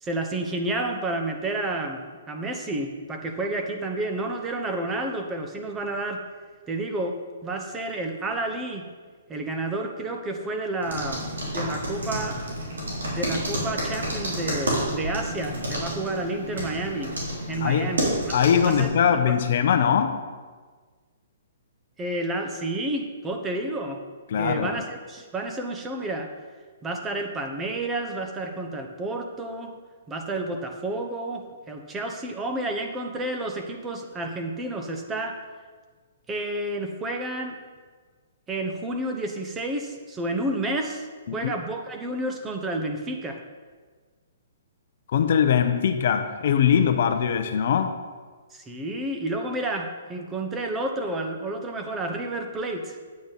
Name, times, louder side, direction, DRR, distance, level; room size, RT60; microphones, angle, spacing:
voice 1, 0.0-6.2 6.7-7.2 7.4-8.9 9.3-12.4 13.1-17.1 17.5-19.2 22.0-24.0 24.4-26.3 26.8-29.8 30.1-35.4 36.3-37.6 38.5-41.1 41.3-43.4 48.5-53.0, right 2 dB, 15° right, 0.9 m, -30 dB
sound 1, 10.8-18.9, right 1 dB, 90° right, 3.3 m, -30 dB
voice 2, 17.6-17.9 18.3-20.2 24.3-24.8 41.3-41.5 45.1-48.0, left 8 dB, 60° left, 0.7 m, -21 dB
9.0 x 8.4 x 4.0 m
hypercardioid pair, 145°, 0 cm